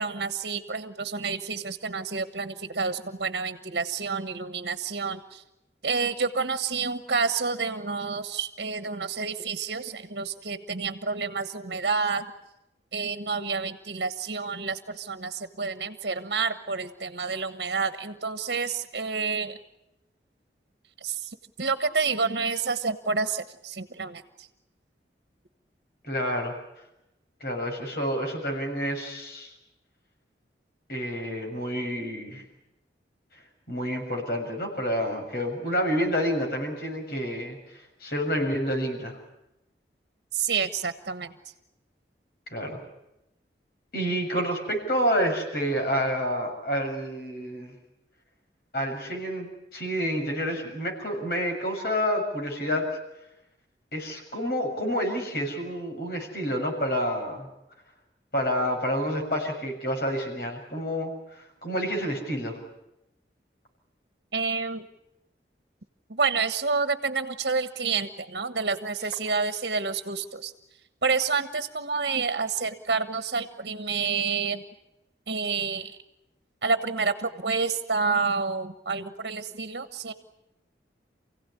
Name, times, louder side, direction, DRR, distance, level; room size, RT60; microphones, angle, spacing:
voice 1, 0.0-5.4 5.8-12.3 12.9-19.6 21.0-24.5 40.3-41.3 64.3-64.8 66.1-70.5 71.0-74.6 75.3-76.0 76.6-80.1, right 4 dB, 70° right, 9 dB, 1.3 m, -29 dB
voice 2, 26.1-26.5 27.4-29.5 30.9-32.4 33.7-37.6 38.0-39.2 42.5-42.8 43.9-47.7 48.7-52.9 53.9-57.5 58.3-61.1 61.4-62.6, equal, 60° left, 2 dB, 6.8 m, -28 dB
28.5 x 16.5 x 9.8 m, 0.90 s
head